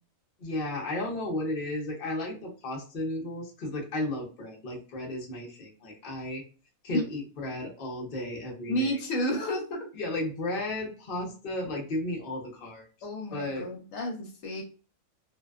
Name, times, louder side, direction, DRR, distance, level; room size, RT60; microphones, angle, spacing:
voice 1, 0.4-6.4 6.8-9.0 9.9-12.9 13.3-13.7, left 1 dB, 50° left, 0 dB, 0.7 m, -34 dB
voice 2, 8.7-9.9 13.0-14.6, equal, 75° left, 2 dB, 1.0 m, -31 dB
2.6 x 2.2 x 2.3 m, 0.36 s
omnidirectional pair, 1.5 m